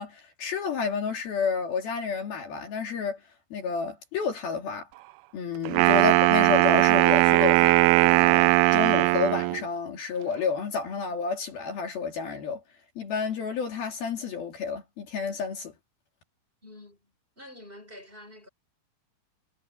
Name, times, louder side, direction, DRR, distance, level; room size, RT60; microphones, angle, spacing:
voice 1, 0.0-3.2 3.5-4.9 5.3-12.6 13.0-15.7, left 5 dB, 60° left, 4.4 m, -30 dB
Wind instrument woodwind instrument, 5.6-9.6, right 20 dB, 85° right, 2.2 m, -20 dB
voice 2, 16.6-18.5, left 1 dB, 10° right, 6.5 m, -48 dB
omnidirectional pair, 5.1 m